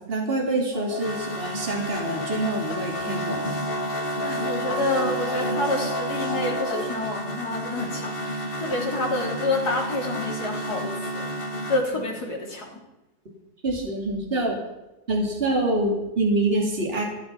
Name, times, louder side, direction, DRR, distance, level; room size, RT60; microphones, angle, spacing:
voice 1, 0.0-3.5 13.6-14.6 15.1-17.0, right 2 dB, 40° right, -1 dB, 3.0 m, -26 dB
sound 1, 0.7-11.8, equal, 40° left, 1.7 m, -30 dB
voice 2, 4.2-11.3 11.7-12.8, left 2 dB, 85° left, -1 dB, 3.8 m, -28 dB
25.5 x 8.9 x 5.6 m, 0.98 s
omnidirectional pair, 1.7 m